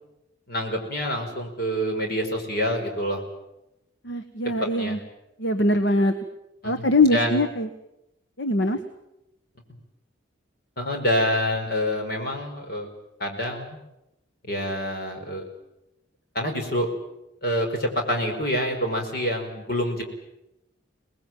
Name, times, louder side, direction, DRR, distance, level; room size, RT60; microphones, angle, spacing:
voice 1, 0.5-3.2 4.4-5.0 6.6-7.4 10.8-12.9 13.2-13.6 14.4-15.5 16.3-16.9 17.4-20.0, equal, 50° left, 3 dB, 5.1 m, -27 dB
voice 2, 4.0-5.0 5.4-6.1 6.6-7.7 8.4-8.8, left 2 dB, 65° left, 9 dB, 1.4 m, -22 dB
26.0 x 20.0 x 9.2 m, 0.91 s
head